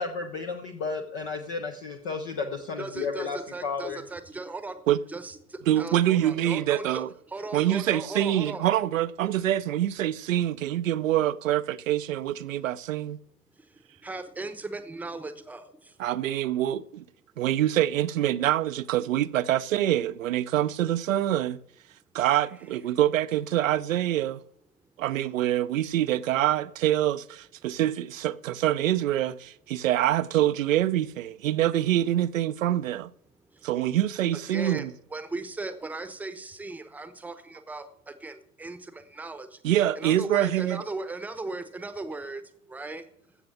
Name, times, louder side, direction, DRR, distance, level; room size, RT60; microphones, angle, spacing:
voice 1, 0.0-4.0, left 4 dB, 15° left, 0.4 m, -33 dB
voice 2, 2.8-4.8 5.1-8.6 13.6-16.0 33.5-33.7 34.5-39.6 39.9-42.4 42.7-43.0, right 3 dB, 5° right, 0.8 m, -38 dB
voice 3, 5.7-7.1 7.5-13.2 16.0-17.0 17.4-21.6 22.1-24.4 25.0-33.1 33.6-34.9 39.6-40.8, right 12 dB, 60° right, 0.6 m, -25 dB
15.0 x 5.9 x 7.0 m
hypercardioid pair, 120°, 46 cm